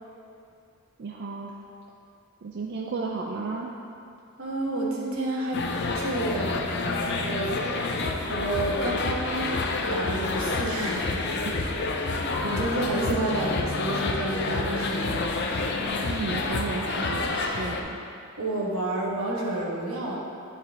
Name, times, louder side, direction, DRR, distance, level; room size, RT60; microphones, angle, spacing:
voice 1, 1.0-1.5 2.4-3.8 11.4-11.6 12.0-13.0 16.1-18.0, right 3 dB, 50° right, -1 dB, 0.4 m, -34 dB
voice 2, 4.4-6.6 7.2-7.5 8.3-9.4 9.9-11.2 12.4-15.7 16.0-16.2 18.4-20.2, right 1 dB, 75° right, -3 dB, 1.2 m, -30 dB
sound 1, 5.5-17.8, left 3 dB, 50° left, 0.5 m, -28 dB
9.3 x 4.9 x 3.4 m, 2.5 s
head